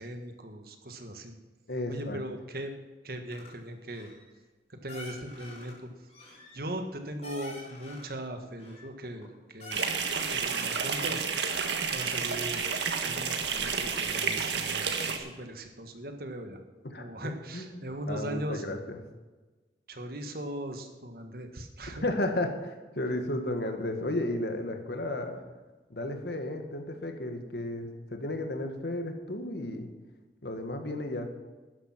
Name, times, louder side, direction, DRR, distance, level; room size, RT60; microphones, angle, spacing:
voice 1, 0.0-1.3 1.9-2.8 3.0-4.1 4.7-6.1 6.5-10.0 10.3-11.3 11.8-12.6 13.0-16.6 17.0-18.6 19.9-22.0, right 1 dB, 55° right, 6 dB, 1.5 m, -39 dB
voice 2, 1.7-2.2 16.9-17.1 17.5-19.0 22.0-25.4 25.9-29.9 30.4-31.3, left 1 dB, 65° left, 5 dB, 1.8 m, -33 dB
sound 1, 3.3-3.5 3.9-4.3 4.9-5.7 6.1-8.2 8.6-9.3 9.6-10.5 10.8-11.5 11.9-12.0, left 2 dB, 35° left, 5.6 m, -48 dB
sound 2, 9.7-15.2, right 5 dB, 90° right, 1.6 m, -30 dB
12.5 x 10.5 x 6.0 m, 1.3 s
head